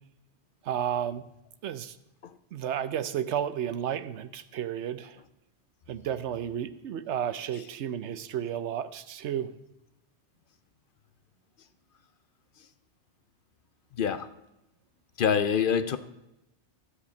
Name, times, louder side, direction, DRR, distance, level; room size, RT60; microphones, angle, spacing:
voice 1, 0.6-1.3 1.6-2.0 2.5-5.2 5.9-9.5, right 9 dB, 80° right, 13 dB, 1.0 m, -32 dB
voice 2, 14.0-14.3 15.2-16.0, left 7 dB, 60° left, 12 dB, 0.7 m, -25 dB
13.0 x 5.0 x 8.1 m, 0.91 s
omnidirectional pair, 1.1 m